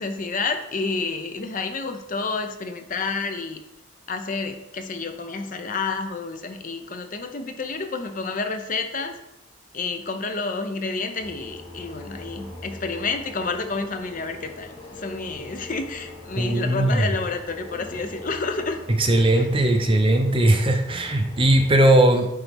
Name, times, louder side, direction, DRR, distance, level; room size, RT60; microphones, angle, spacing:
voice 1, 0.0-3.6 4.1-9.1 9.7-18.8 19.4-19.5, left 4 dB, 40° left, 7 dB, 0.6 m, -29 dB
sound 1, 11.2-21.7, left 1 dB, 75° left, 2.2 m, -42 dB
voice 2, 16.4-17.0 19.0-22.3, right 1 dB, 25° right, 5 dB, 0.6 m, -19 dB
9.9 x 4.1 x 3.5 m, 0.89 s
head